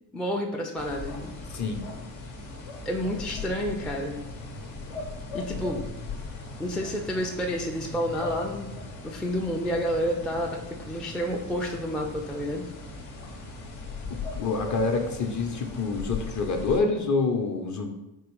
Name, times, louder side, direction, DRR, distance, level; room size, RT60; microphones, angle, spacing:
voice 1, 0.1-1.3 2.8-4.2 5.3-5.8 6.6-8.7 9.0-12.7, equal, ahead, 0 dB, 0.4 m, -30 dB
sound 1, 0.8-16.8, left 3 dB, 70° left, 0.9 m, -39 dB
voice 2, 1.5-1.8 14.3-17.9, left 3 dB, 35° left, 4 dB, 0.7 m, -27 dB
3.7 x 3.0 x 3.0 m, 0.93 s
hypercardioid pair, 50°, 49 cm